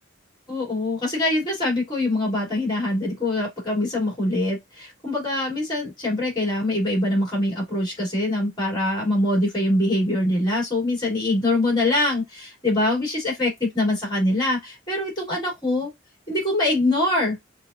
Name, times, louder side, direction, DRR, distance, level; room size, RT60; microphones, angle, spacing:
voice 1, 0.5-15.9 16.3-17.4, left 1 dB, 20° left, 2.8 m, -23 dB
5.9 x 2.6 x 2.4 m
head